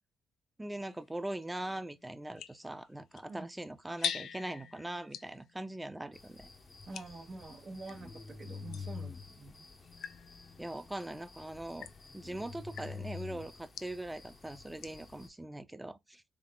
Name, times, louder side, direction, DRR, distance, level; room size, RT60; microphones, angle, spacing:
voice 1, 0.6-6.5 10.6-11.9 12.1-16.3, right 1 dB, 10° right, 0.4 m, -41 dB
sound 1, 0.8-8.1 8.7-15.1, left 9 dB, 70° left, 0.3 m, -46 dB
sound 2, 6.1-15.3, left 4 dB, 30° left, 0.8 m, -48 dB
voice 2, 6.9-9.7, right 3 dB, 40° right, 1.1 m, -47 dB
3.6 x 3.6 x 2.2 m
cardioid pair, 90°, 0 cm